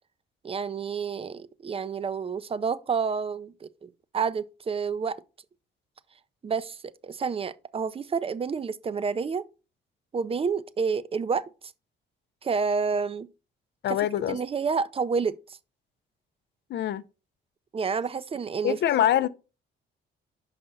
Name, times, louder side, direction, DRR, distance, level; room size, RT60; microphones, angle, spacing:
voice 1, 0.4-5.2 6.4-6.8 7.0-9.5 10.1-11.4 12.4-13.3 13.9-14.0 14.3-15.4 17.7-18.8, right 5 dB, 30° right, 0.5 m, -29 dB
voice 2, 13.8-14.4 16.7-17.0 18.6-19.3, left 11 dB, 60° left, 0.5 m, -24 dB
5.8 x 5.4 x 3.9 m
cardioid pair, 90°, 20 cm